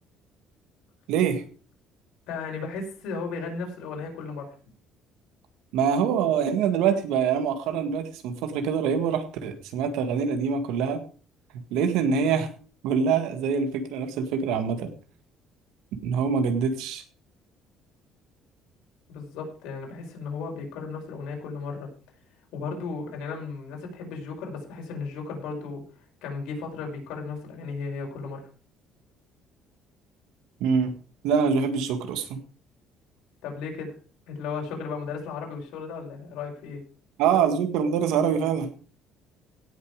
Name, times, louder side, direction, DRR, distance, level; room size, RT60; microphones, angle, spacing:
voice 1, 1.1-1.4 5.7-11.0 11.7-12.5 12.8-14.9 16.0-17.0 30.6-30.9 31.2-32.4 37.2-38.7, right 6 dB, 85° right, 7 dB, 1.8 m, -24 dB
voice 2, 2.3-4.5 19.1-21.9 22.5-25.8 26.2-28.4 33.4-34.0 34.3-36.8, left 4 dB, 80° left, 1 dB, 5.3 m, -35 dB
17.0 x 6.8 x 5.0 m, 0.38 s
cardioid pair, 165°, 0 cm